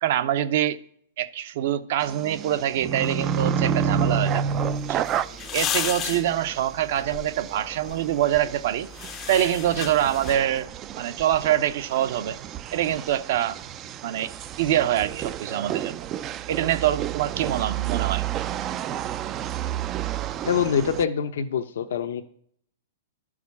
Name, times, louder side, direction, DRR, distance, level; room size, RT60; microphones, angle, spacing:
voice 1, 0.0-0.8 1.2-4.4 4.9-5.1 5.5-8.9 9.3-10.7 11.0-12.4 12.7-13.6 14.0-14.3 14.6-16.1 16.5-18.2, right 11 dB, 55° right, 0.7 m, -25 dB
sound 1, 2.0-21.0, right 8 dB, 25° right, 0.4 m, -30 dB
sound 2, 4.5-10.7, left 10 dB, 25° left, 0.6 m, -35 dB
voice 2, 20.5-22.2, left 7 dB, 75° left, 0.7 m, -25 dB
11.5 x 4.9 x 8.3 m
hypercardioid pair, 150°, 0 cm